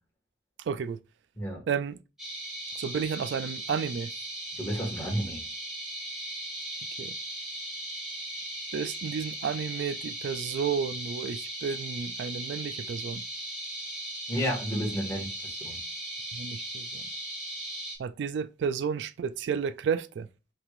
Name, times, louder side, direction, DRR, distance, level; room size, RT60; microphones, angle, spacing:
voice 1, 0.7-1.0 1.7-2.0 2.8-4.1 7.0-7.2 8.7-13.2 16.3-17.0 18.0-20.3, right 6 dB, 70° right, 0.3 m, -32 dB
sound 1, 2.2-18.0, right 1 dB, ahead, 2.1 m, -38 dB
voice 2, 4.6-5.4 14.3-15.8, equal, 15° left, 1.7 m, -31 dB
5.7 x 3.3 x 2.5 m
head